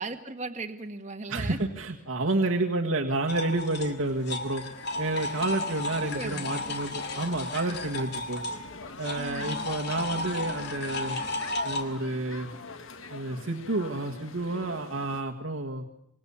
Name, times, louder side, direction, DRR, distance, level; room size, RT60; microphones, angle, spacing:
voice 1, 0.0-1.6 6.0-6.6 9.1-9.7, right 3 dB, 35° right, 5 dB, 1.4 m, -37 dB
voice 2, 1.3-4.6 5.0-8.4 9.0-11.2 11.6-12.5 13.1-15.8, right 2 dB, 80° right, 0 dB, 1.7 m, -30 dB
sound 1, 3.3-11.8, left 2 dB, 50° left, 2.4 m, -34 dB
sound 2, 3.6-15.2, left 4 dB, 70° left, 1.5 m, -44 dB
26.5 x 22.5 x 7.1 m, 0.78 s
head